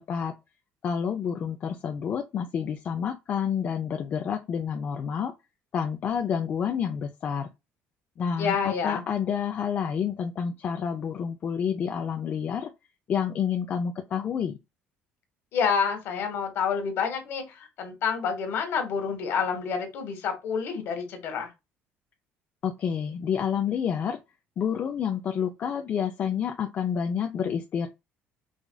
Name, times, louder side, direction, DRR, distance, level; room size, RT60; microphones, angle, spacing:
voice 1, 0.8-5.3 5.7-7.5 8.2-12.7 13.1-14.6 22.6-24.2 24.6-27.9, left 7 dB, 40° left, 0.4 m, -29 dB
voice 2, 8.4-9.0 15.5-21.5, left 6 dB, 60° left, 1.2 m, -28 dB
4.8 x 2.4 x 2.2 m
cardioid pair, 135°, 4 cm